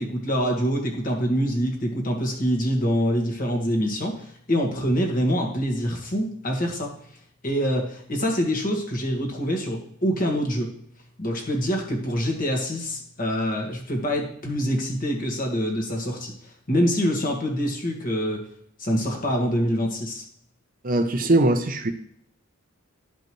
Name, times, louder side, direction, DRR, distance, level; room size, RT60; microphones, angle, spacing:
voice 1, 0.0-6.9 7.4-10.7 11.2-18.4 18.8-20.2, equal, 40° left, 1 dB, 1.7 m, -25 dB
voice 2, 20.8-21.9, right 2 dB, 40° right, 7 dB, 0.6 m, -21 dB
12.0 x 5.2 x 3.1 m, 0.66 s
head